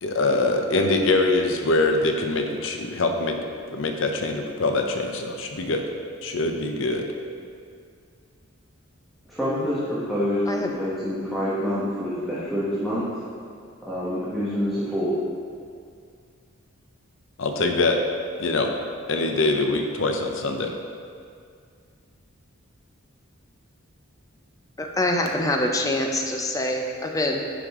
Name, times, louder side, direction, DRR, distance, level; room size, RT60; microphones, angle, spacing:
voice 1, 0.0-3.4 3.7-5.8 6.2-7.0 17.4-18.0 18.4-18.7 19.1-20.7, left 2 dB, 60° left, 4 dB, 0.6 m, -23 dB
voice 2, 9.3-13.1 13.9-15.1, equal, ahead, -11 dB, 1.1 m, -26 dB
voice 3, 10.5-10.8 24.8-27.4, left 1 dB, 15° left, 2 dB, 0.5 m, -25 dB
9.7 x 5.1 x 3.6 m, 2.2 s
head